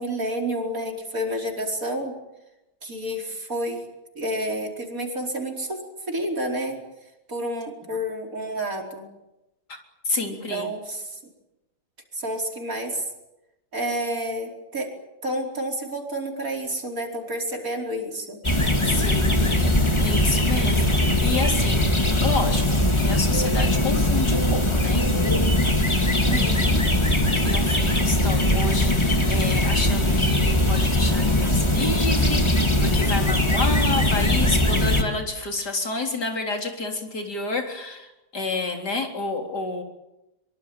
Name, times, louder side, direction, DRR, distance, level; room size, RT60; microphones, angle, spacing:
voice 1, 0.0-2.1 2.8-3.8 4.1-5.8 6.1-6.8 7.3-9.0 10.3-11.2 12.1-13.0 13.7-14.9 15.2-18.4 26.3-26.8, right 1 dB, 55° right, 2 dB, 5.1 m, -29 dB
voice 2, 10.1-10.7 18.8-21.9 22.2-25.1 26.3-38.1 38.3-39.8, left 3 dB, 75° left, 3 dB, 4.3 m, -30 dB
sound 1, 18.4-35.0, left 1 dB, 15° left, 2.3 m, -21 dB
24.0 x 24.0 x 9.0 m, 0.94 s
omnidirectional pair, 1.8 m